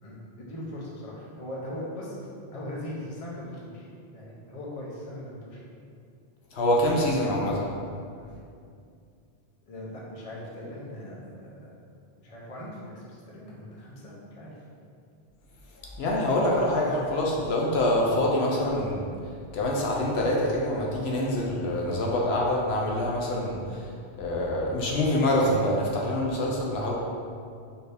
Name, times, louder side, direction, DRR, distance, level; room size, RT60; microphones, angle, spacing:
voice 1, 0.0-5.6 9.7-11.7 12.2-14.6, left 1 dB, 40° left, -5 dB, 0.8 m, -40 dB
voice 2, 6.5-7.7 16.0-19.1 19.5-23.9 24.2-26.9, left 1 dB, 75° left, -3 dB, 0.8 m, -25 dB
4.2 x 2.7 x 3.3 m, 2.4 s
omnidirectional pair, 1.1 m